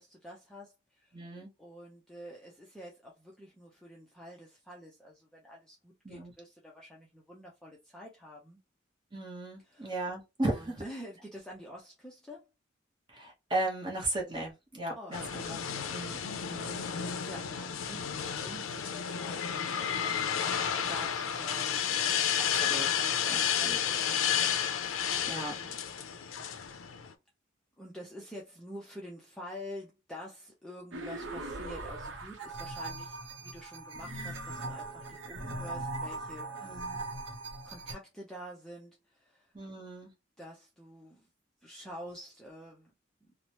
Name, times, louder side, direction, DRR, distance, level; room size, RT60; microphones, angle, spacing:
voice 1, 0.0-1.2 1.6-8.6 9.6-10.0 10.4-12.5 15.0-15.4 15.7-16.0 16.4-25.0 25.2-25.8 27.8-36.9 37.6-39.5 40.4-41.3 41.6-42.9 43.2-43.3, equal, 5° left, 0.4 m, -48 dB
voice 2, 1.1-1.5 6.0-6.3 9.1-10.8 13.1-15.6 15.9-16.2 16.5-16.9 22.5-22.9 23.3-23.8 25.3-25.5 36.6-37.0 39.5-40.1, right 1 dB, 25° right, 0.9 m, -36 dB
sound 1, 15.1-27.1, left 8 dB, 90° left, 0.5 m, -31 dB
sound 2, 30.9-37.9, right 2 dB, 65° right, 0.7 m, -40 dB
3.0 x 2.0 x 2.8 m
head